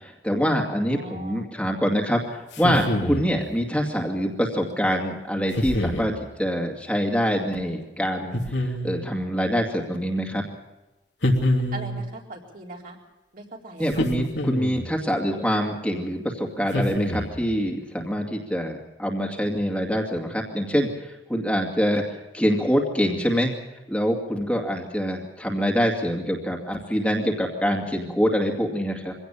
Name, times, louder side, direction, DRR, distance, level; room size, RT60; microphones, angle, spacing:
voice 1, 0.0-6.1 6.4-10.5 13.8-23.5 23.9-29.1, equal, 5° left, 1 dB, 2.3 m, -25 dB
voice 2, 0.8-1.4 11.7-13.0 13.3-14.0, right 2 dB, 50° right, -1 dB, 4.1 m, -40 dB
sound 1, 2.5-3.4 5.5-6.1 8.3-9.1 11.2-12.1 13.9-14.9 16.7-17.5, left 1 dB, 80° left, 3.0 m, -26 dB
24.0 x 17.0 x 7.3 m, 1.1 s
head